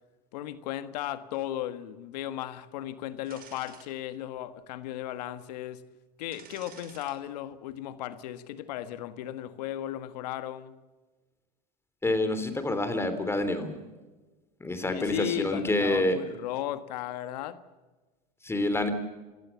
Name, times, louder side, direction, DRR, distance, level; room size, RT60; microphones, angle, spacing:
voice 1, 0.3-5.8 6.2-10.7 14.8-17.6, left 12 dB, 80° left, 1.6 m, -36 dB
sound 1, 3.3-3.9 4.4-4.5 6.3-7.1 7.5-7.7, right 7 dB, 45° right, 5.5 m, -50 dB
voice 2, 12.0-13.8 14.6-16.2 18.4-18.9, left 1 dB, 10° left, 3.4 m, -27 dB
27.5 x 16.5 x 7.3 m
supercardioid pair, 95°, 21 cm